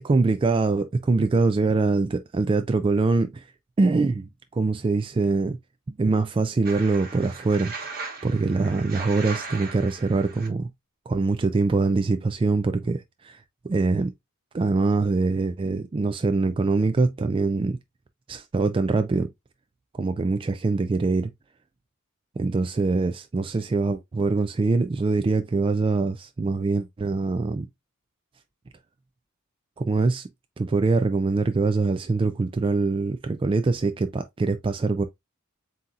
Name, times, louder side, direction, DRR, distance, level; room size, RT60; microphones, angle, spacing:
voice 1, 0.0-3.5 3.8-5.6 5.9-7.7 8.2-10.7 11.1-13.4 13.7-14.1 14.5-17.8 18.3-19.3 19.9-21.3 22.4-27.7 29.8-30.3 30.6-35.0, right 3 dB, 25° right, 0.3 m, -23 dB
sound 1, 6.7-10.5, right 4 dB, 45° right, 1.3 m, -38 dB
7.6 x 2.8 x 2.4 m
head